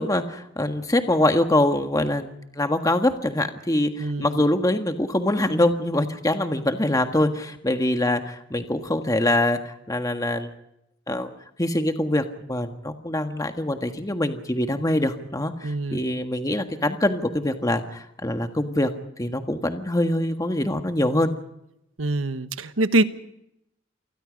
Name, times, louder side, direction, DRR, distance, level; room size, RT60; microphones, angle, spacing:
voice 1, 0.0-10.5 11.1-11.3 11.6-18.9 19.2-21.3, left 1 dB, 20° left, 6 dB, 1.5 m, -24 dB
voice 2, 4.0-4.4 15.6-16.0 22.0-23.0, right 2 dB, 90° right, 11 dB, 1.2 m, -24 dB
28.0 x 19.5 x 5.2 m, 0.82 s
head